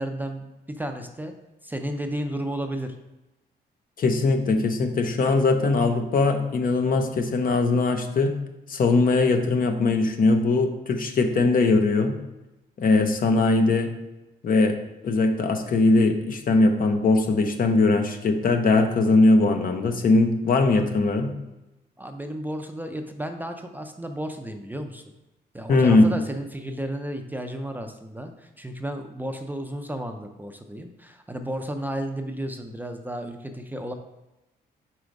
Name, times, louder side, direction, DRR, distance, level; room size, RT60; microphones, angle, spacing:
voice 1, 0.0-1.3 1.6-3.0 22.0-25.0 25.5-33.9, right 1 dB, 10° right, 5 dB, 0.5 m, -33 dB
voice 2, 4.0-8.3 8.7-12.1 12.8-13.9 14.4-14.8 15.0-21.3 25.7-26.1, left 3 dB, 50° left, 6 dB, 0.8 m, -20 dB
4.7 x 4.3 x 5.2 m, 0.98 s
cardioid pair, 95°, 18 cm